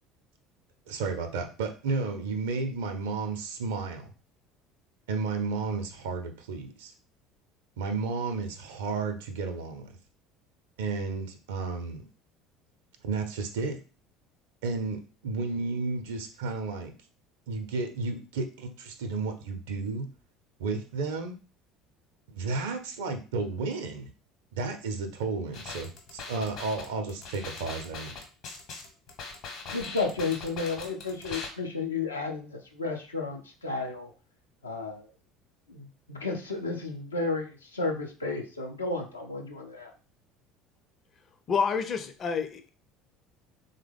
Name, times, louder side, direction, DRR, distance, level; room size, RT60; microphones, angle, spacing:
voice 1, 0.9-4.1 5.1-6.9 7.8-10.0 10.8-12.1 13.0-13.8 14.6-16.9 17.5-20.1 20.6-21.3 22.3-24.1 24.5-28.1, right 4 dB, 70° right, 6 dB, 0.5 m, -32 dB
sound 1, 25.5-31.5, left 4 dB, 55° left, 0.9 m, -41 dB
voice 2, 29.7-34.1 34.6-35.1 35.7-39.9, left 3 dB, 85° left, 1 dB, 0.5 m, -32 dB
voice 3, 41.5-42.7, left 6 dB, 40° left, 8 dB, 0.5 m, -28 dB
3.4 x 2.1 x 3.4 m, 0.34 s
figure-of-eight pair, 65°, 0 cm